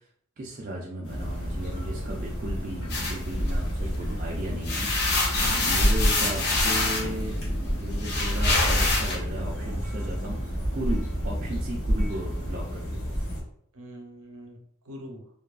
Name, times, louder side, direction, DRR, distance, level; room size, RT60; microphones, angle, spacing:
voice 1, 0.4-13.0, right 1 dB, 40° right, -3 dB, 0.3 m, -36 dB
sound 1, 1.0-13.4, equal, 75° left, 1.0 m, -29 dB
sound 2, 2.9-4.1 4.5-9.2, left 2 dB, 45° left, 0.5 m, -26 dB
voice 2, 5.4-5.9 13.7-15.3, equal, 80° right, 1 dB, 0.6 m, -44 dB
2.7 x 2.3 x 2.3 m, 0.64 s
head